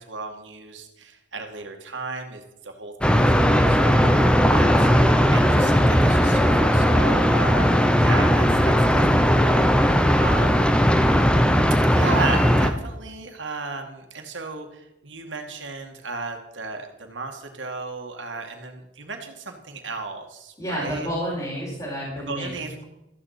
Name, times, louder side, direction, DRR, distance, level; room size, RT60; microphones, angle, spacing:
voice 1, 0.0-8.7 9.1-10.7 11.9-21.1 22.2-22.8, right 3 dB, 80° right, 4 dB, 2.2 m, -35 dB
sound 1, 3.0-12.7, equal, 5° left, 0.9 m, -18 dB
voice 2, 20.6-22.7, equal, 20° left, -7 dB, 4.4 m, -30 dB
14.0 x 6.9 x 8.4 m, 0.88 s
head